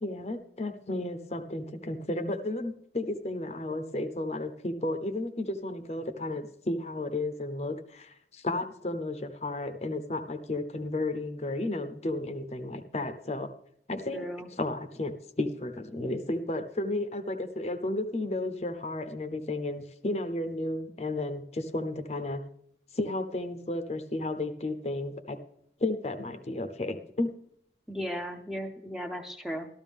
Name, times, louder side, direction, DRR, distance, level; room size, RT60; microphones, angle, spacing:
voice 1, 0.0-13.5 13.9-14.3 14.6-22.4 22.9-25.4 25.8-27.3, left 2 dB, 35° left, 8 dB, 0.7 m, -33 dB
voice 2, 14.1-14.5 27.9-29.7, equal, ahead, 4 dB, 0.7 m, -36 dB
13.0 x 12.5 x 3.6 m, 0.70 s
head